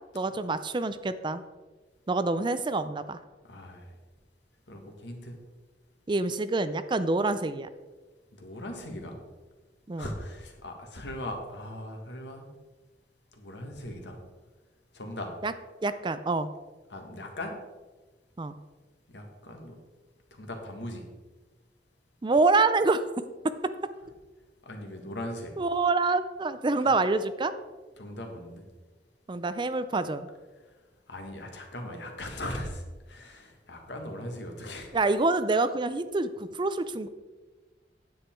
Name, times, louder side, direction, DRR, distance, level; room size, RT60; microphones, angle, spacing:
voice 1, 0.1-1.4 2.1-3.2 6.1-7.7 9.9-10.1 15.4-15.5 15.8-16.5 18.4-18.6 22.2-23.0 25.6-27.5 29.3-30.3 34.9-37.1, right 3 dB, 25° right, 12 dB, 0.4 m, -26 dB
voice 2, 3.4-4.0 4.7-5.4 8.3-9.2 10.0-12.5 13.3-14.2 14.9-15.3 16.9-17.6 19.1-19.8 20.3-21.0 24.6-25.5 26.8-26.9 28.0-28.6 30.6-30.7 31.1-35.0, left 1 dB, 85° left, 3 dB, 1.8 m, -39 dB
9.6 x 8.1 x 4.5 m, 1.3 s
head